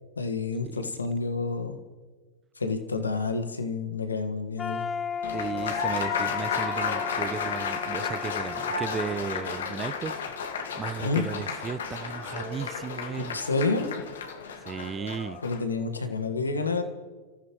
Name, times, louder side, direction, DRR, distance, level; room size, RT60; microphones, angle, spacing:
voice 1, 0.2-1.8 2.6-4.8 11.0-11.2 13.2-13.9 15.4-16.8, left 3 dB, 90° left, 7 dB, 1.6 m, -29 dB
sound 1, 4.6-10.5, left 6 dB, 20° left, 0.4 m, -36 dB
Applause, 5.2-15.6, left 6 dB, 75° left, 1.8 m, -33 dB
voice 2, 5.3-10.2 10.8-13.4 14.6-15.4, right 7 dB, 25° right, 16 dB, 0.6 m, -35 dB
30.0 x 14.5 x 3.1 m, 1.4 s
hypercardioid pair, 100°, 0 cm